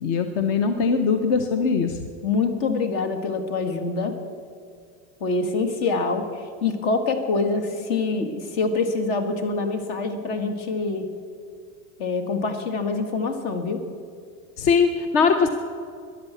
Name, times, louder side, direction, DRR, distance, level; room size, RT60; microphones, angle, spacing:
voice 1, 0.0-2.0 14.6-15.5, left 5 dB, 30° left, 8 dB, 0.6 m, -21 dB
voice 2, 2.2-4.2 5.2-6.3 6.6-11.1 12.0-13.8, left 4 dB, 50° left, 7 dB, 1.8 m, -25 dB
13.5 x 10.5 x 8.2 m, 2.3 s
supercardioid pair, 170°, 42 cm